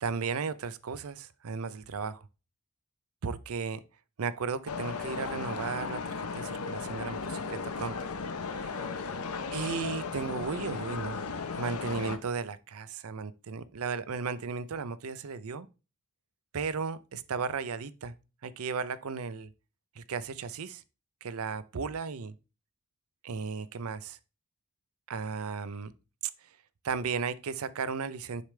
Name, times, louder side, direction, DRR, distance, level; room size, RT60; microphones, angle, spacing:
voice 1, 0.0-2.3 3.2-3.8 4.2-7.9 8.5-8.9 9.5-15.7 16.5-18.1 18.4-19.5 20.0-20.8 21.2-22.3 23.2-24.2 25.1-25.9 26.8-28.4, right 5 dB, 75° right, 0.5 m, -35 dB
sound 1, 4.7-12.2, left 4 dB, 80° left, 0.8 m, -36 dB
6.6 x 5.0 x 3.2 m
head